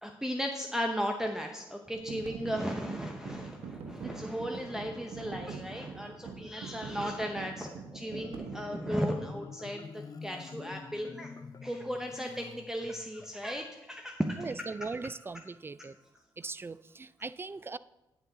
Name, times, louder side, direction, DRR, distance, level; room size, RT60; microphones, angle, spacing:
voice 1, 0.0-11.3 11.6-14.9 15.8-15.9, equal, 5° right, 3 dB, 0.8 m, -36 dB
sound 1, 1.9-9.3, right 4 dB, 85° right, 1.0 m, -44 dB
Marimba xylophone, 8.2-13.3, left 5 dB, 40° left, 0.6 m, -47 dB
voice 2, 14.4-16.0 16.4-17.8, right 4 dB, 25° right, 17 dB, 0.3 m, -39 dB
9.8 x 6.8 x 3.9 m, 0.94 s
cardioid pair, 70°, 10 cm